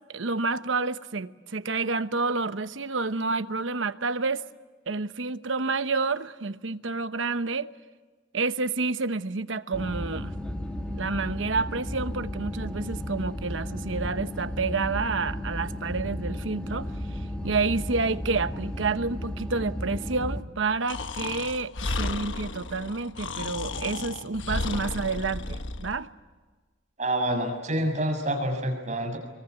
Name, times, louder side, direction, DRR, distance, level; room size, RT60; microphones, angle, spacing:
voice 1, 0.1-4.4 4.9-7.7 8.3-10.3 10.9-16.9 17.4-21.7 22.0-26.1, right 4 dB, 85° right, 1.0 m, -29 dB
sound 1, 9.7-20.4, left 1 dB, 5° left, 2.0 m, -34 dB
Breathing, 20.9-26.0, left 3 dB, 80° left, 1.2 m, -33 dB
voice 2, 27.0-29.2, right 1 dB, 40° right, 6.9 m, -27 dB
26.0 x 23.5 x 9.6 m
head